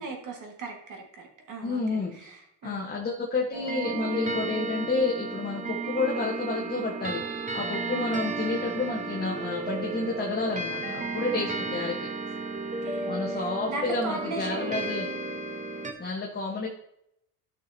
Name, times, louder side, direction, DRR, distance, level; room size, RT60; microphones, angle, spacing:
voice 1, 0.0-2.8 8.2-8.3 11.3-11.8 12.8-14.8, right 3 dB, 45° right, 2 dB, 1.7 m, -38 dB
voice 2, 1.6-2.3 2.6-12.1 13.0-15.1 16.0-16.7, left 3 dB, 25° left, -2 dB, 1.2 m, -30 dB
sound 1, 3.5-15.9, right 3 dB, 20° right, 1.0 m, -33 dB
12.0 x 6.1 x 2.7 m, 0.78 s
cardioid pair, 105°, 41 cm